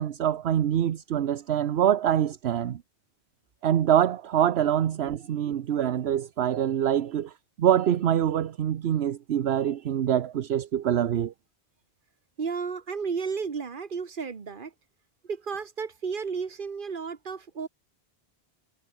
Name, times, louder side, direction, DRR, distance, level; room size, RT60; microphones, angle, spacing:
voice 1, 0.0-2.8 3.6-7.3 7.6-11.3, right 10 dB, 70° right, 1.0 m, -25 dB
voice 2, 12.4-14.7 15.2-17.7, right 5 dB, 50° right, 1.5 m, -33 dB
omnidirectional pair, 1.1 m